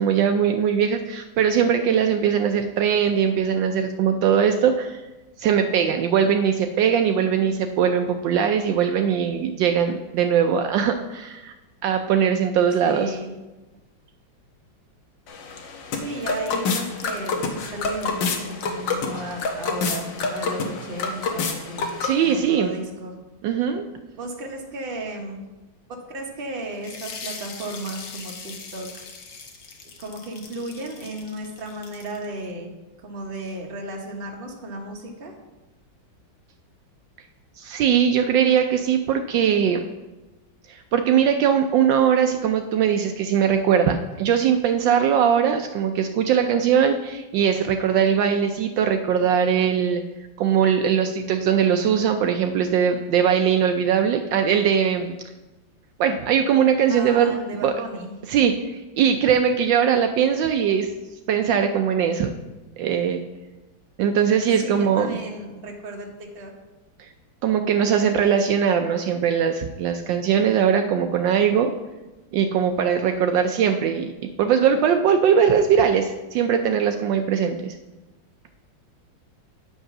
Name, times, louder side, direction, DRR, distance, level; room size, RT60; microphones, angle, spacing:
voice 1, 0.0-5.0 5.4-11.5 11.8-13.1 22.0-22.7 23.4-23.8 37.6-39.8 40.7-50.0 50.4-55.1 56.0-57.4 57.6-57.7 58.3-58.5 59.0-60.9 61.3-62.3 62.8-63.2 64.0-65.2 67.4-71.7 72.3-74.1 74.4-77.8, right 8 dB, 75° right, 6 dB, 1.2 m, -20 dB
voice 2, 12.8-13.3 15.9-21.9 22.2-23.1 24.2-25.4 26.1-29.1 30.0-32.7 33.0-35.3 56.9-58.1 64.6-66.5, right 1 dB, 35° right, 1 dB, 1.2 m, -34 dB
sound 1, 15.3-22.4, left 4 dB, 70° left, 1.6 m, -28 dB
sound 2, 26.8-32.3, left 4 dB, 55° left, 1.3 m, -40 dB
8.9 x 5.4 x 5.9 m, 1.1 s
omnidirectional pair, 2.1 m